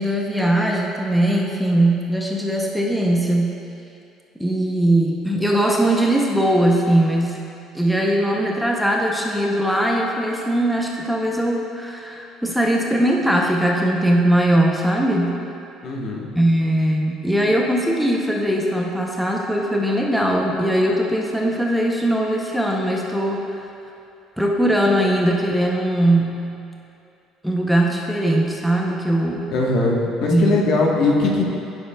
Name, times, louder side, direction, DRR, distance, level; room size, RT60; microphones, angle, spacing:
voice 1, 0.0-3.5 4.4-7.4 7.7-15.3 16.3-23.7 24.4-26.5 27.4-29.5 30.3-30.6, right 1 dB, ahead, -1 dB, 0.6 m, -20 dB
voice 2, 15.8-16.3 29.5-31.4, left 2 dB, 60° left, -1 dB, 1.1 m, -20 dB
9.9 x 7.0 x 2.2 m, 2.6 s
cardioid pair, 120°, 0 cm